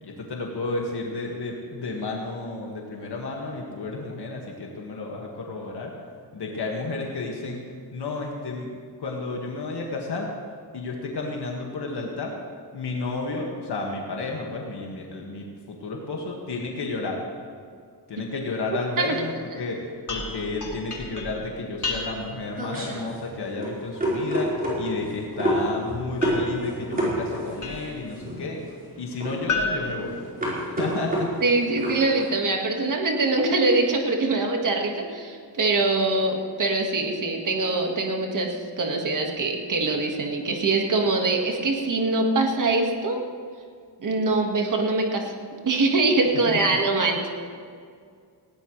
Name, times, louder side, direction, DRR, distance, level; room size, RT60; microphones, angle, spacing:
voice 1, 0.0-5.9 6.3-7.6 7.9-8.7 9.0-10.3 10.7-12.3 12.7-17.2 18.1-28.6 29.0-30.2 30.6-31.3 46.5-46.6, left 3 dB, 70° left, -1 dB, 1.9 m, -32 dB
sound 1, 20.1-22.5 26.2-28.1 29.5-30.9, left 3 dB, 45° left, 2.9 m, -33 dB
sound 2, 21.9-32.3, equal, 20° right, 4.5 m, -29 dB
voice 2, 31.4-43.2 44.0-47.3, right 3 dB, 50° right, 2 dB, 1.8 m, -23 dB
19.5 x 17.0 x 3.3 m, 2.2 s
wide cardioid pair, 170°, 42 cm